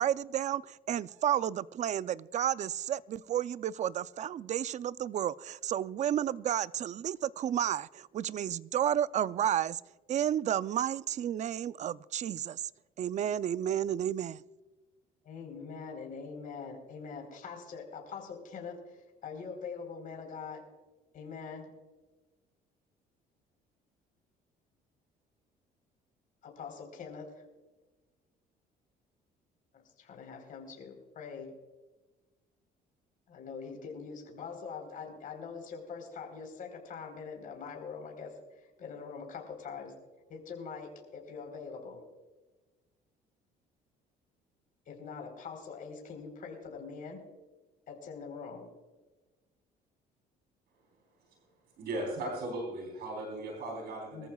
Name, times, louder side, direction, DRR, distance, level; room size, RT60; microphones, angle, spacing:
voice 1, 0.0-9.8 10.1-12.6 13.0-14.4, right 10 dB, 45° right, 17 dB, 0.4 m, -31 dB
voice 2, 15.2-20.6 21.1-21.7 26.4-27.4 30.0-31.5 33.3-39.9 40.3-42.0 44.9-47.2 47.9-48.7 54.1-54.3, left 5 dB, 55° left, 2 dB, 3.9 m, -43 dB
voice 3, 51.8-54.3, right 2 dB, 70° right, 0 dB, 3.6 m, -37 dB
23.0 x 14.0 x 2.3 m, 1.2 s
cardioid pair, 110°, 17 cm